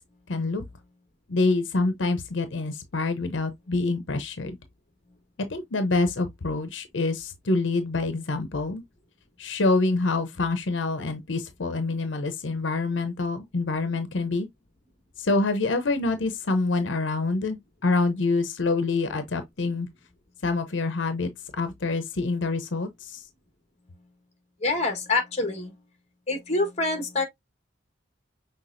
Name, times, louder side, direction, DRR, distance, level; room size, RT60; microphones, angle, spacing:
voice 1, 0.3-0.6 1.3-4.6 5.5-8.8 9.4-14.5 15.2-19.9 20.4-23.2, left 3 dB, 80° left, 0.8 m, -26 dB
voice 2, 24.6-25.7 26.3-27.2, left 3 dB, 35° left, 1.4 m, -26 dB
6.0 x 3.4 x 2.6 m
head